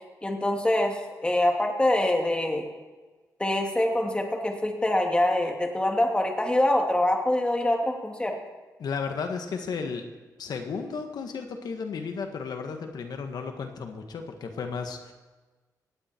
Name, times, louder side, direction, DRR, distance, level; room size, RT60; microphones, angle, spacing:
voice 1, 0.2-2.7 3.4-8.3, left 1 dB, 15° left, 2 dB, 2.7 m, -25 dB
voice 2, 8.8-10.0 10.4-15.1, left 5 dB, 75° left, 5 dB, 1.7 m, -34 dB
19.0 x 16.0 x 4.6 m, 1.3 s
cardioid pair, 90°, 7 cm